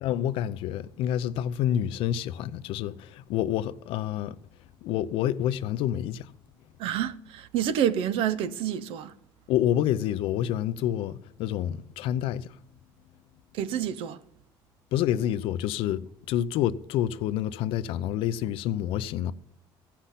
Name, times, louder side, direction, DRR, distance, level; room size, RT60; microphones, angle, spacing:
voice 1, 0.0-4.4 4.8-6.3 9.5-12.6 14.9-19.3, left 11 dB, 80° left, 0.6 m, -28 dB
voice 2, 6.8-9.1 13.5-14.2, right 10 dB, 80° right, 0.8 m, -28 dB
15.5 x 5.8 x 8.3 m
cardioid pair, 130°, 9 cm